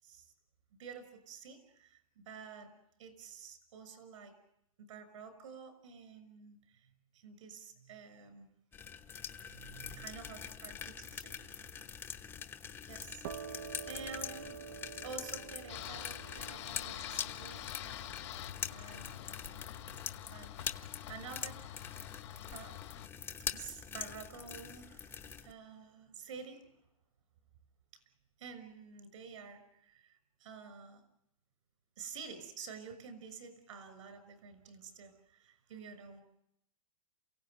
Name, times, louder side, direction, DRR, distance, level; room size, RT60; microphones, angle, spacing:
voice 1, 0.8-2.7 3.0-4.3 4.8-8.5 9.5-11.9 12.8-13.2 13.9-14.6 15.0-18.0 18.7-19.7 20.3-20.7 21.1-22.1 22.5-22.9 23.5-26.7 27.9-28.0 28.4-31.0 32.0-36.2, right 5 dB, 65° right, 11 dB, 6.1 m, -50 dB
sound 1, 8.7-25.5, left 7 dB, 10° left, 0.9 m, -44 dB
sound 2, 13.2-20.7, right 8 dB, 45° right, 0.9 m, -50 dB
sound 3, 15.7-23.1, left 13 dB, 55° left, 1.3 m, -46 dB
28.5 x 16.5 x 9.4 m, 0.78 s
hypercardioid pair, 155°, 18 cm